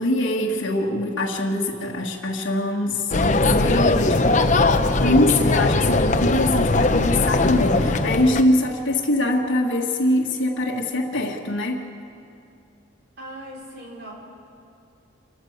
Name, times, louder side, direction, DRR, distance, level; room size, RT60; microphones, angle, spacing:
voice 1, 0.0-4.7 5.0-11.9, left 1 dB, 70° left, -4 dB, 1.8 m, -23 dB
sound 1, 3.1-8.4, left 2 dB, 35° left, 0.8 m, -20 dB
voice 2, 13.2-14.1, right 1 dB, 55° right, -3 dB, 5.2 m, -38 dB
27.0 x 14.5 x 8.1 m, 2.5 s
head